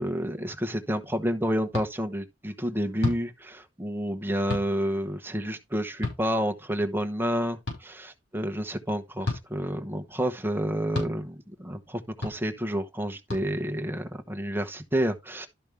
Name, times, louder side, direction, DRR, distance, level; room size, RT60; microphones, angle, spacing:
voice 1, 0.0-15.5, equal, 10° right, 1.0 m, -29 dB
sound 1, 1.7-1.9 3.0-3.2 4.5-4.7 6.0-6.2 7.7-7.8 9.2-9.4 10.9-11.1 12.2-12.4 13.3-13.4, left 3 dB, 65° left, 5.3 m, -30 dB
12.0 x 5.2 x 3.4 m
head